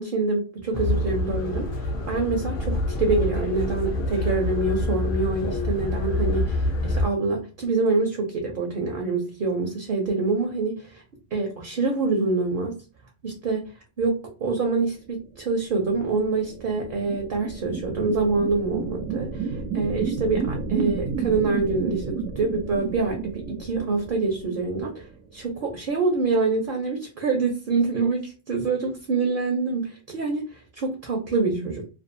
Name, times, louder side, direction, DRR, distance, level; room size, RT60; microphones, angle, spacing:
voice 1, 0.0-11.0 11.3-12.8 13.2-13.7 14.0-31.8, right 3 dB, 55° right, 2 dB, 0.7 m, -26 dB
sound 1, 0.7-7.1, left 1 dB, 55° left, 0.6 m, -26 dB
sound 2, 15.6-25.3, right 5 dB, 90° right, 1.0 m, -32 dB
2.6 x 2.3 x 2.5 m, 0.34 s
omnidirectional pair, 1.3 m